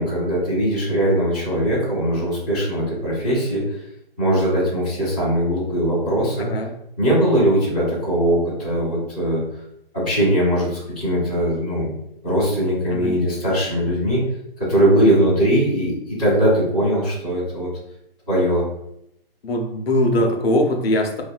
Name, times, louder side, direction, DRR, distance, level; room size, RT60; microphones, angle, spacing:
voice 1, 0.0-3.8 4.2-6.5 7.0-9.4 9.9-11.9 12.2-14.2 14.6-17.7 18.3-18.6, equal, 10° right, -15 dB, 0.5 m, -20 dB
voice 2, 6.4-6.7 12.9-13.2 19.4-21.2, left 1 dB, 80° left, 3 dB, 0.7 m, -21 dB
3.1 x 2.6 x 2.3 m, 0.77 s
hypercardioid pair, 175°, 30 cm